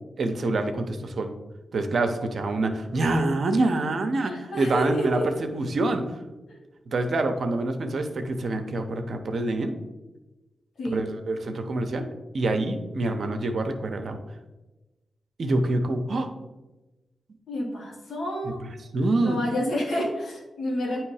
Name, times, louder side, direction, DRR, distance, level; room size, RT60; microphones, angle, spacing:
voice 1, 0.2-1.3 1.7-6.0 6.9-9.7 10.9-12.1 12.3-14.2 15.4-16.3 18.9-19.4, right 2 dB, 65° right, 6 dB, 0.8 m, -26 dB
voice 2, 4.2-5.3 6.5-6.6 10.8-11.0 17.5-18.6 19.2-21.0, equal, 75° left, -2 dB, 1.7 m, -29 dB
8.8 x 3.1 x 4.8 m, 1.1 s
supercardioid pair, 45°, 0 cm